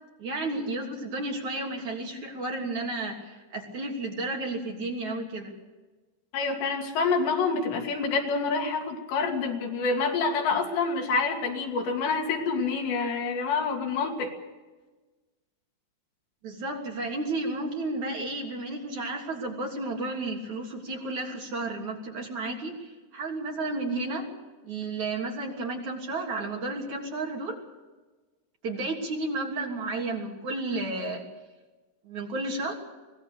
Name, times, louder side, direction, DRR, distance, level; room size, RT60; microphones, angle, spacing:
voice 1, 0.2-5.5 16.4-24.3 24.6-27.6 28.6-31.2 32.0-32.7, right 2 dB, 45° right, 0 dB, 4.1 m, -32 dB
voice 2, 6.3-14.3, left 4 dB, 70° left, 2 dB, 4.8 m, -27 dB
24.5 x 19.0 x 6.8 m, 1.2 s
omnidirectional pair, 5.2 m